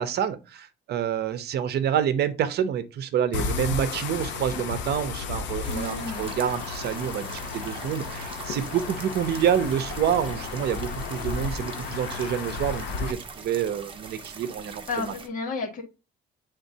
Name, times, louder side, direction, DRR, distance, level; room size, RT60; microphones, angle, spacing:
voice 1, 0.0-15.1, right 9 dB, 60° right, 0.7 m, -28 dB
sound 1, 3.3-13.1, left 5 dB, 85° left, 0.9 m, -33 dB
voice 2, 5.6-6.2 14.9-15.8, left 3 dB, 45° left, 1.8 m, -32 dB
sound 2, 5.6-15.3, right 4 dB, 30° right, 1.1 m, -42 dB
9.3 x 3.7 x 2.7 m
cardioid pair, 150°, 18 cm